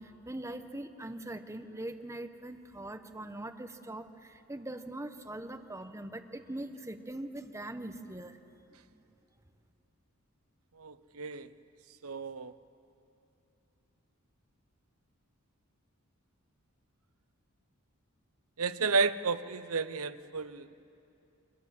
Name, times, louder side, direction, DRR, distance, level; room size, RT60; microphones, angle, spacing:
voice 1, 0.0-8.4 8.9-9.0, right 1 dB, 15° right, 6 dB, 1.2 m, -42 dB
voice 2, 10.8-11.5 12.0-12.5 18.6-20.7, right 4 dB, 70° right, 11 dB, 0.9 m, -32 dB
27.5 x 25.5 x 7.7 m, 2.8 s
head